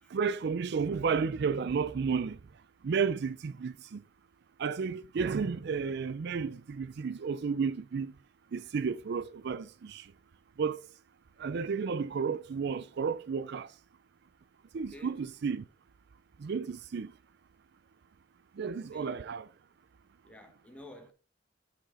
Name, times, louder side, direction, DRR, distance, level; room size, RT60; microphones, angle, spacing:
voice 1, 0.1-2.4 2.8-4.0 4.6-8.1 8.5-10.1 10.6-10.8 11.4-13.7 14.7-15.6 16.4-17.1 18.6-19.5, right 5 dB, 60° right, 0.4 m, -32 dB
voice 2, 14.8-15.2 18.9-19.1 20.2-21.1, left 1 dB, 5° left, 1.3 m, -51 dB
8.8 x 5.0 x 3.6 m
head